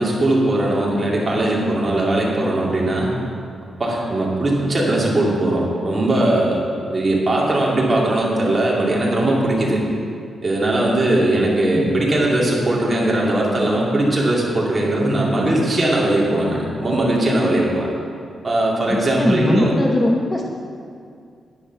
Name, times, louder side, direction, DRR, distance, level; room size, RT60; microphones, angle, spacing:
voice 1, 0.0-3.1 3.8-6.6 6.9-9.8 10.4-17.9 18.4-19.8, right 1 dB, 25° right, -4 dB, 2.4 m, -19 dB
voice 2, 18.9-20.4, left 1 dB, 15° left, 0 dB, 0.8 m, -20 dB
10.0 x 9.2 x 5.9 m, 2.3 s
wide cardioid pair, 140°, 0 cm